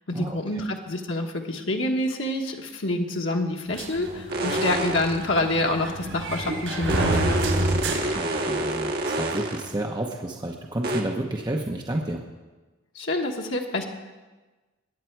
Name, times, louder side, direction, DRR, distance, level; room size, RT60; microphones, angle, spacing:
voice 1, 0.1-7.4 12.9-13.9, left 2 dB, 70° left, 1 dB, 1.3 m, -27 dB
sound 1, 3.7-9.0, right 1 dB, 90° right, 3.9 m, -29 dB
sound 2, 4.3-5.3 6.9-9.7 10.8-11.0, right 1 dB, 55° right, 1.5 m, -28 dB
voice 2, 8.1-12.2, right 1 dB, 20° right, 0 dB, 0.8 m, -30 dB
21.0 x 8.3 x 4.6 m, 1.2 s
head